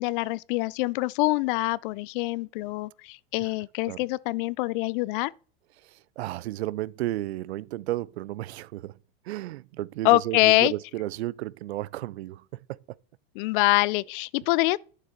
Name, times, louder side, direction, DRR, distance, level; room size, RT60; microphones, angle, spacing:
voice 1, 0.0-5.3 10.0-10.7 13.4-14.8, left 20 dB, 55° left, 0.4 m, -25 dB
voice 2, 5.8-8.9 9.3-12.4 12.7-12.8, right 16 dB, 85° right, 0.5 m, -33 dB
11.0 x 6.9 x 4.3 m
hypercardioid pair, 115°, 31 cm